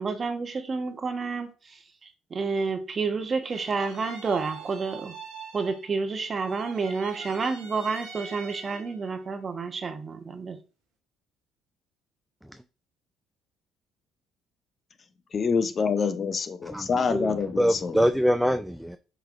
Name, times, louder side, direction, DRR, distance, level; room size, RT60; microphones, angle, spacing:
voice 1, 0.0-1.5 2.3-5.1 5.5-10.6, right 4 dB, 40° right, 0.9 m, -29 dB
sound 1, 3.4-6.1 6.3-9.1, right 6 dB, 85° right, 1.5 m, -43 dB
voice 2, 15.3-18.1, left 5 dB, 45° left, 0.6 m, -26 dB
voice 3, 16.7-19.0, equal, 5° right, 0.3 m, -25 dB
5.6 x 3.3 x 2.5 m
hypercardioid pair, 60°, 0 cm